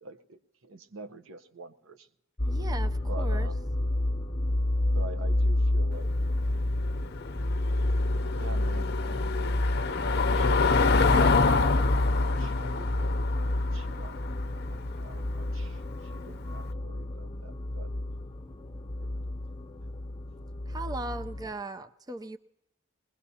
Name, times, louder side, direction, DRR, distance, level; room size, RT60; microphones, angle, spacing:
voice 1, 0.0-2.1 3.1-3.7 4.9-6.1 8.4-14.4 14.6-17.9 19.0-19.3, right 2 dB, 85° right, 9 dB, 0.8 m, -46 dB
sound 1, 2.4-21.5, left 1 dB, 25° left, 0.9 m, -29 dB
voice 2, 2.4-3.5 20.7-22.4, right 2 dB, 20° right, 10 dB, 0.5 m, -38 dB
Car passing by / Engine, 5.9-16.6, left 4 dB, 55° left, 0.6 m, -29 dB
21.0 x 20.5 x 2.8 m, 0.84 s
head